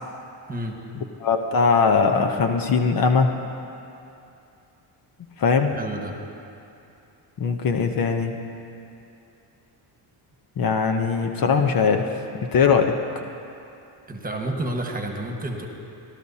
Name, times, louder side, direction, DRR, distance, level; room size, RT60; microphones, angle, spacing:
voice 1, 0.9-3.4 5.4-5.8 7.4-8.3 10.6-13.0, left 5 dB, 50° left, 5 dB, 0.9 m, -21 dB
voice 2, 5.8-6.1 14.1-15.7, right 1 dB, 20° right, 2 dB, 1.5 m, -30 dB
18.0 x 12.0 x 2.8 m, 2.6 s
cardioid pair, 90°, 44 cm